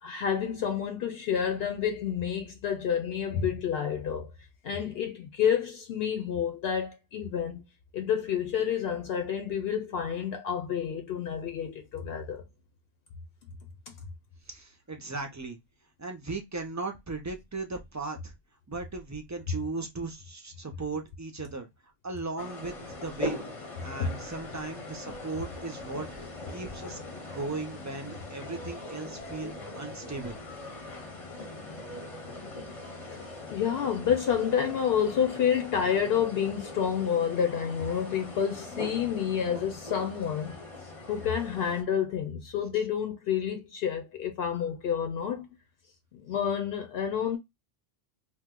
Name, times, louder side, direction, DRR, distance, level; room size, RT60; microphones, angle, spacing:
voice 1, 0.0-4.3 4.6-7.6 7.9-12.4 24.0-24.2 33.1-33.2 33.5-40.6 41.1-45.5 46.1-47.4, left 8 dB, 75° left, 0.8 m, -29 dB
voice 2, 14.5-15.6 16.0-18.3 18.7-21.7 22.0-22.7 23.0-23.4 23.8-27.0 27.2-30.4, right 3 dB, 30° right, 0.3 m, -37 dB
sound 1, 22.4-41.8, left 2 dB, 35° left, 0.7 m, -41 dB
2.9 x 2.1 x 3.5 m
omnidirectional pair, 1.0 m